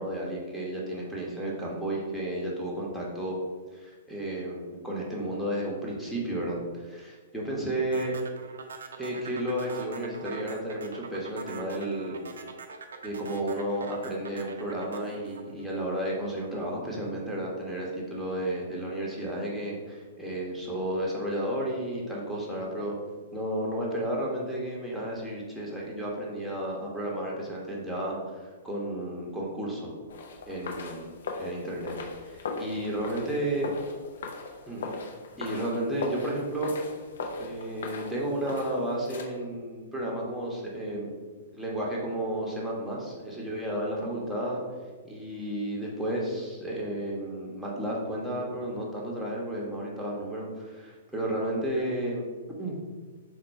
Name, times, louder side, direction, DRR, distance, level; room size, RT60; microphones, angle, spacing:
voice 1, 0.0-3.4 3.7-8.1 9.0-12.2 13.0-23.0 23.3-29.9 30.5-31.1 31.4-32.0 32.3-33.7 34.7-35.0 35.4-36.7 37.4-41.1 41.5-44.6 45.0-52.2 52.6-52.8, right 1 dB, ahead, -5 dB, 0.9 m, -32 dB
sound 1, 7.9-16.3, right 5 dB, 65° right, 0.4 m, -43 dB
sound 2, 30.1-39.2, left 4 dB, 60° left, 0.5 m, -39 dB
4.2 x 2.2 x 4.2 m, 1.4 s
figure-of-eight pair, 110°, 0 cm